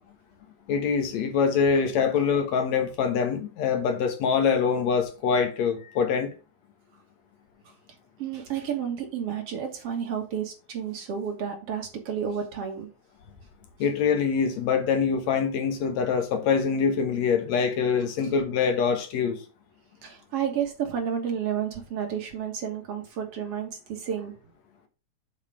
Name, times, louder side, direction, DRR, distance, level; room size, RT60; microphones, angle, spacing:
voice 1, 0.7-6.3 13.8-19.4, left 6 dB, 70° left, 2.3 m, -24 dB
voice 2, 8.2-12.9 20.0-24.4, right 8 dB, 60° right, 2.2 m, -31 dB
7.4 x 4.7 x 4.9 m
omnidirectional pair, 3.3 m